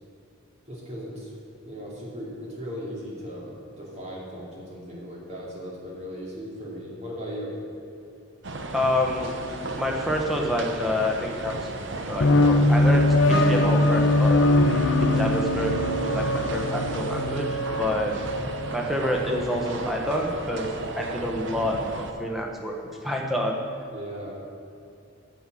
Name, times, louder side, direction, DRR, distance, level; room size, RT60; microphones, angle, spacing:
voice 1, 0.7-1.3 1.6-7.5 23.9-24.4, equal, 30° right, -4 dB, 2.6 m, -37 dB
sound 1, 8.4-22.1, right 2 dB, 60° right, 0.9 m, -34 dB
voice 2, 8.7-9.3 9.8-14.4 15.0-15.7 16.0-18.2 18.7-20.7 21.0-23.6, left 1 dB, ahead, -1 dB, 1.2 m, -28 dB
sound 2, 12.2-19.5, left 1 dB, 65° left, 0.6 m, -22 dB
9.1 x 7.7 x 7.7 m, 2.7 s
head